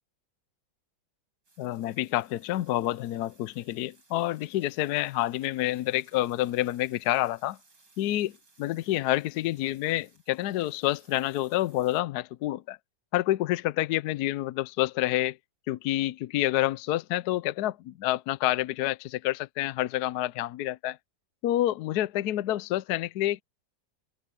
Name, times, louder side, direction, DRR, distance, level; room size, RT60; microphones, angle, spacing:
sound 1, 1.4-12.0, right 3 dB, 70° right, 5.4 m, -63 dB
voice 1, 1.6-7.6 8.0-12.8 13.1-15.4 15.7-21.0 21.4-23.4, left 15 dB, 70° left, 1.0 m, -28 dB
open air
omnidirectional pair, 2.0 m